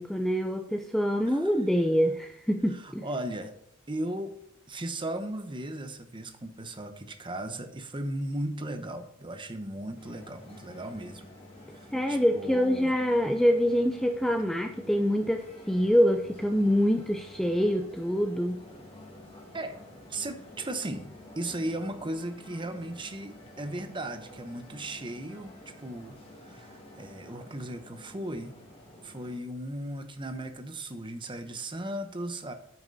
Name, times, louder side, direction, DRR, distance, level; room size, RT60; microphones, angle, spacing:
voice 1, 0.0-3.1 11.9-18.6, equal, ahead, 5 dB, 0.5 m, -25 dB
voice 2, 2.7-3.5 3.9-4.3 4.7-11.3 11.7-12.9 19.5-19.8 20.1-21.1 21.4-28.6 29.0-32.5, right 1 dB, 25° right, 8 dB, 0.9 m, -36 dB
sound 1, 10.0-29.4, left 1 dB, 30° left, 1.8 m, -50 dB
9.2 x 5.9 x 4.0 m, 0.78 s
head